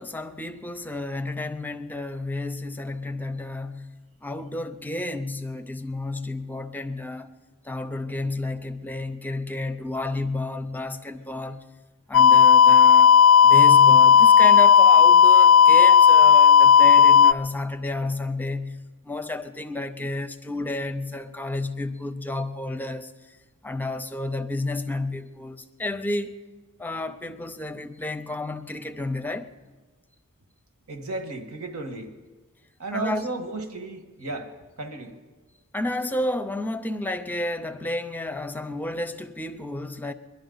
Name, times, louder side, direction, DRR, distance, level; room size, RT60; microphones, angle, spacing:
voice 1, 0.0-3.9 4.2-7.3 7.6-11.7 12.1-13.1 13.4-18.8 19.0-23.4 23.6-26.3 26.8-29.5 32.9-33.3 35.7-40.1, left 2 dB, 10° left, 0.6 m, -31 dB
sound 1, 12.1-17.3, left 7 dB, 70° left, 0.4 m, -13 dB
voice 2, 30.9-32.1 32.8-34.5 34.8-35.2, right 3 dB, 85° right, 1.6 m, -34 dB
22.5 x 11.5 x 4.0 m
head